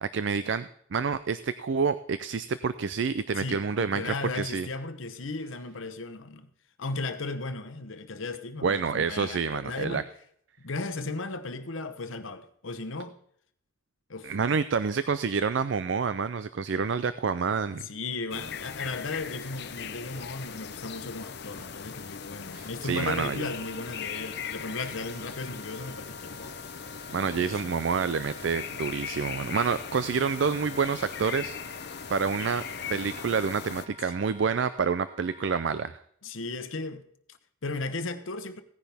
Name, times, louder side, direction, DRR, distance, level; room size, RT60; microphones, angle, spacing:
voice 1, 0.0-4.7 8.6-10.0 14.2-17.9 22.5-23.4 27.1-31.6 32.1-32.6 32.9-36.0, right 5 dB, 65° right, 0.4 m, -28 dB
voice 2, 3.4-6.5 6.8-10.1 10.6-13.2 14.1-14.6 17.8-26.6 27.1-27.8 34.0-34.1 36.2-38.6, left 3 dB, 75° left, 0.9 m, -36 dB
sound 1, 18.3-33.9, left 7 dB, 55° left, 0.7 m, -39 dB
Hammer / Wood, 18.8-19.0 20.1-20.3 21.6-21.9 23.0-23.2, right 1 dB, 85° right, 3.7 m, -50 dB
Wind instrument woodwind instrument, 23.4-35.8, right 1 dB, 25° right, 1.0 m, -50 dB
16.5 x 10.0 x 3.5 m
head